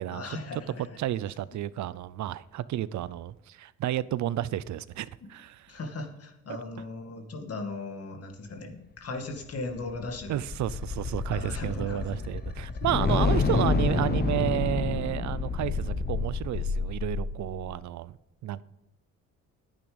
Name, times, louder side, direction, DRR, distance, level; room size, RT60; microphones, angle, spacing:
voice 1, 0.1-1.0 5.2-5.3 5.7-10.4 11.3-12.3 12.9-13.0, left 3 dB, 50° left, 2.1 m, -38 dB
voice 2, 1.0-5.7 6.5-6.6 10.3-18.2 18.4-18.6, right 13 dB, 70° right, 0.6 m, -31 dB
sound 1, 9.3-17.7, left 4 dB, 35° left, 1.3 m, -29 dB
10.5 x 8.9 x 5.2 m
cardioid pair, 90°, 30 cm